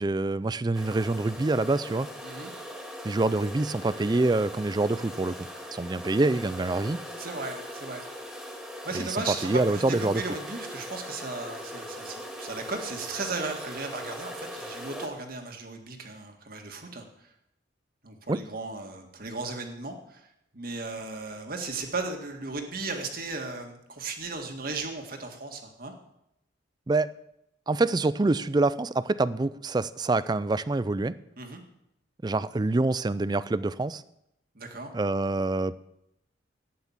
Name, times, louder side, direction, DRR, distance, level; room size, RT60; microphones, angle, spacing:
voice 1, 0.0-2.1 3.0-7.0 8.9-9.1 9.4-10.2 18.3-18.4 26.9-27.1 27.7-31.2 32.2-34.0 34.9-35.8, right 2 dB, 20° right, 17 dB, 0.4 m, -26 dB
sound 1, 0.7-15.1, equal, ahead, 2.1 m, -40 dB
voice 2, 7.2-8.1 8.8-17.3 18.0-20.3 20.5-25.9 31.4-31.6 34.6-34.9, right 3 dB, 50° right, 4 dB, 1.9 m, -36 dB
11.5 x 9.5 x 7.2 m, 0.81 s
head